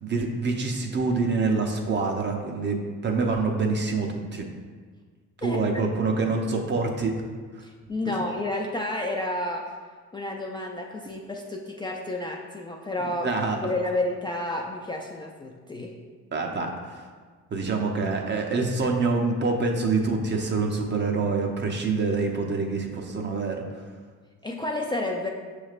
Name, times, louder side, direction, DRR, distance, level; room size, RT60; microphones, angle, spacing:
voice 1, 0.0-4.4 5.4-7.2 8.1-8.2 13.2-13.6 16.3-17.0 17.5-23.6, right 3 dB, 35° right, 3 dB, 0.6 m, -26 dB
voice 2, 5.4-5.8 7.6-9.7 10.1-13.3 13.6-15.9 24.4-25.3, left 1 dB, 15° left, 0 dB, 0.3 m, -30 dB
6.2 x 3.2 x 2.4 m, 1.5 s
cardioid pair, 90°, 30 cm